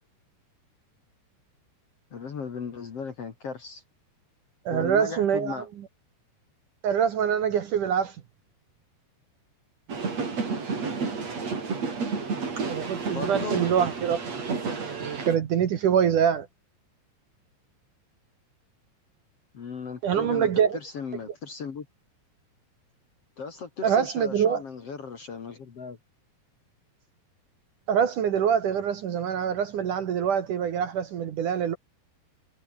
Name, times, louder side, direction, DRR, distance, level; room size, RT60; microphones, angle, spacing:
voice 1, 2.1-3.8 4.7-5.7 13.1-13.6 19.5-21.9 23.4-26.0, left 5 dB, 45° left, 2.5 m, -36 dB
voice 2, 4.7-5.6 6.8-8.2 12.7-14.2 14.5-16.5 20.0-20.8 23.8-24.6 27.9-31.8, right 8 dB, 60° right, 2.7 m, -25 dB
sound 1, 9.9-15.4, right 4 dB, 40° right, 5.5 m, -31 dB
omnidirectional pair, 4.8 m